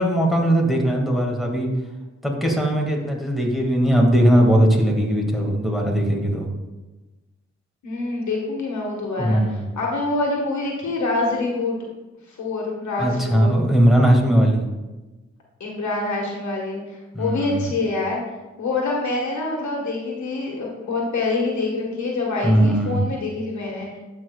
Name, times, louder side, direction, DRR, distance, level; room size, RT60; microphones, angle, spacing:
voice 1, 0.0-1.7 2.2-6.5 9.2-9.6 13.0-14.7 17.1-17.6 22.4-23.0, equal, ahead, -1 dB, 2.0 m, -19 dB
voice 2, 7.8-11.8 12.3-13.6 15.6-18.2 18.6-24.0, left 3 dB, 75° left, -1 dB, 1.5 m, -26 dB
11.5 x 5.1 x 2.3 m, 1.1 s
supercardioid pair, 40°, 29 cm